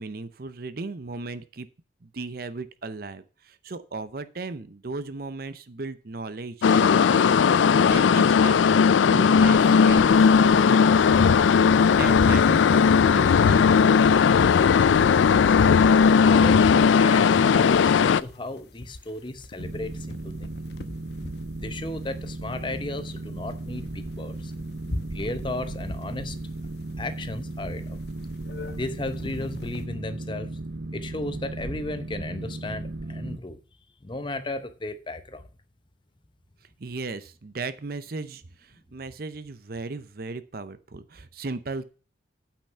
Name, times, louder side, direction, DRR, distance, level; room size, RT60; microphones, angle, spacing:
voice 1, 0.0-1.7 2.0-7.3 7.8-8.6 9.0-11.4 11.8-13.7 36.8-41.9, right 3 dB, 55° right, 0.7 m, -36 dB
sound 1, 6.6-18.2, left 6 dB, 85° left, 0.4 m, -18 dB
sound 2, 10.1-29.9, left 1 dB, 60° left, 1.0 m, -43 dB
voice 2, 16.2-20.5 21.6-24.5 25.1-26.4 27.0-28.0 28.8-30.5 30.9-33.6 34.0-35.4, left 2 dB, 25° left, 0.8 m, -35 dB
Boat Water vehicle, 19.6-33.4, right 2 dB, 90° right, 0.9 m, -36 dB
8.8 x 5.9 x 5.7 m
head